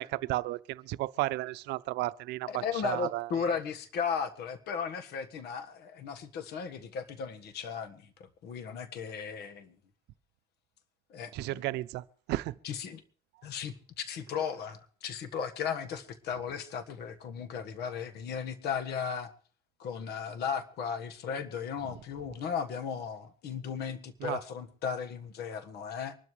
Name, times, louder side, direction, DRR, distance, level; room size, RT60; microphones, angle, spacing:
voice 1, 0.0-3.3 11.3-12.6 24.2-24.4, right 17 dB, 85° right, 0.6 m, -33 dB
voice 2, 2.5-9.8 11.1-11.7 12.6-13.0 13.4-19.3 19.8-26.2, left 6 dB, 75° left, 1.6 m, -36 dB
24.0 x 12.5 x 3.3 m
cardioid pair, 110°, 17 cm